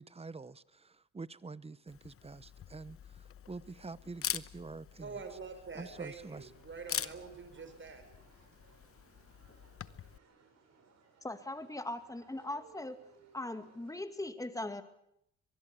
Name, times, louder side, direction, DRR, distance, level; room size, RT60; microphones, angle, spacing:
voice 1, 0.0-5.2 5.7-6.5, right 3 dB, 20° right, 0.9 m, -47 dB
Camera, 1.9-10.2, left 9 dB, 50° left, 1.0 m, -44 dB
voice 2, 5.0-8.0, right 5 dB, 40° right, 5.8 m, -46 dB
sound 1, 5.9-14.0, right 4 dB, 60° right, 7.8 m, -64 dB
voice 3, 11.2-13.0 13.3-14.8, left 2 dB, 10° left, 2.3 m, -40 dB
24.5 x 20.5 x 8.3 m
cardioid pair, 90°, 30 cm